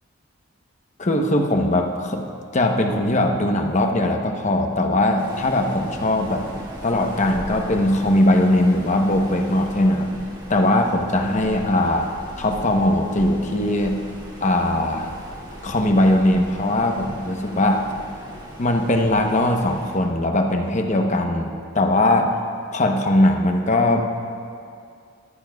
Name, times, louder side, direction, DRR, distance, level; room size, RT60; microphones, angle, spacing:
voice 1, 1.0-2.2 2.5-6.4 6.8-10.1 10.5-12.1 12.4-14.0 14.4-15.2 15.6-17.9 18.6-22.4 22.7-24.0, left 1 dB, 35° left, 3 dB, 0.9 m, -20 dB
Waves surf, 5.2-20.0, equal, 20° right, 2.0 m, -39 dB
19.5 x 14.0 x 2.3 m, 2.4 s
head